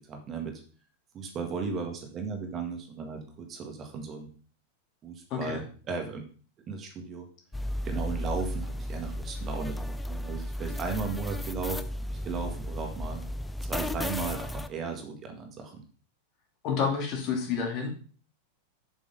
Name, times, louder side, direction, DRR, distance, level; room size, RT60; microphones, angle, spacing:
voice 1, 0.1-0.6 1.1-4.3 5.0-6.2 6.7-7.3 7.8-13.2 13.6-15.8, right 5 dB, 30° right, 4 dB, 1.8 m, -36 dB
sound 1, 7.5-14.7, left 1 dB, 5° left, 0.5 m, -34 dB
voice 2, 16.6-17.9, left 6 dB, 40° left, 1 dB, 2.8 m, -29 dB
7.3 x 6.1 x 5.6 m, 0.41 s
figure-of-eight pair, 90°, 0 cm